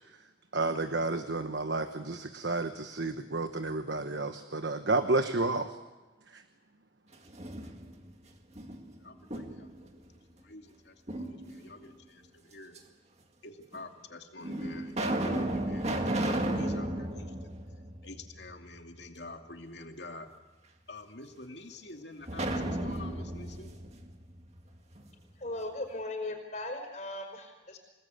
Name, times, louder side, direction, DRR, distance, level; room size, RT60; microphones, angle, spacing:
voice 1, 0.5-5.8 6.3-6.4, right 2 dB, 70° right, 8 dB, 1.2 m, -31 dB
sound 1, 7.1-8.1 8.6-9.8 11.1-11.9 12.8-12.9 13.7-13.8 14.4-18.5 18.9-19.0 22.3-25.1, right 1 dB, 35° right, 2.1 m, -34 dB
voice 2, 9.0-12.8 13.4-17.5 18.0-20.3 20.9-23.7, left 2 dB, 65° left, 4 dB, 2.5 m, -47 dB
voice 3, 25.4-27.8, left 2 dB, 40° left, 4 dB, 5.0 m, -38 dB
28.5 x 19.0 x 8.3 m, 1.2 s
head